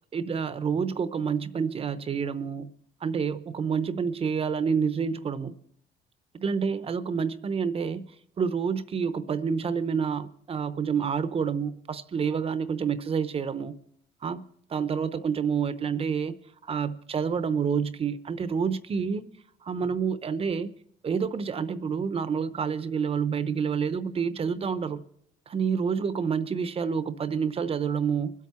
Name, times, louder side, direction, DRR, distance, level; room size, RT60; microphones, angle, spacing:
voice 1, 0.1-2.7 3.0-5.5 6.3-8.0 8.4-13.8 14.2-14.4 14.7-16.4 16.6-19.3 19.6-20.7 21.0-25.0 25.5-28.3, right 6 dB, 35° right, 0.8 m, -28 dB
24.5 x 8.4 x 4.3 m
cardioid pair, 110°, 17 cm